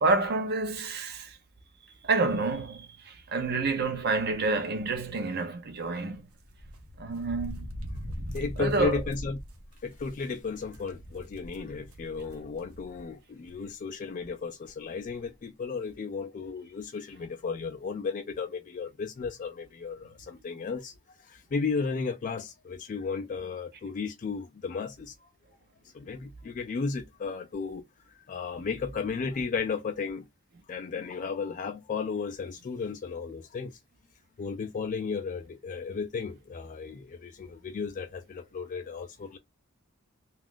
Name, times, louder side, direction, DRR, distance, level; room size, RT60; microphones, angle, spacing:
voice 1, 0.0-1.4 2.0-6.3 7.0-7.7 8.6-9.0, right 3 dB, 45° right, 0.6 m, -28 dB
sound 1, 6.4-13.1 13.5-13.6 14.6-14.7 15.0-15.3, equal, 90° right, 0.8 m, -41 dB
voice 2, 8.3-9.4 9.8-25.3 25.9-27.8 28.1-30.3 30.7-33.7 34.4-39.4, left 5 dB, 35° left, 0.3 m, -34 dB
2.4 x 2.4 x 3.5 m
head